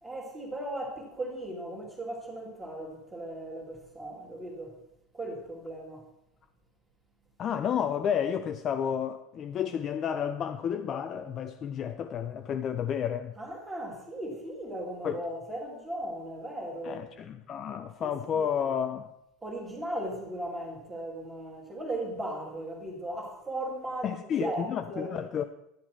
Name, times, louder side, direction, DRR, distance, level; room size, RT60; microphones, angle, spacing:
voice 1, 0.0-4.8 5.1-6.1 13.4-17.0 18.0-18.5 19.4-25.1, right 1 dB, 10° right, 2.1 m, -37 dB
voice 2, 7.4-13.3 15.0-15.2 16.8-19.1 24.0-25.4, left 8 dB, 25° left, 0.4 m, -31 dB
11.5 x 9.8 x 4.5 m
cardioid pair, 180°, 0 cm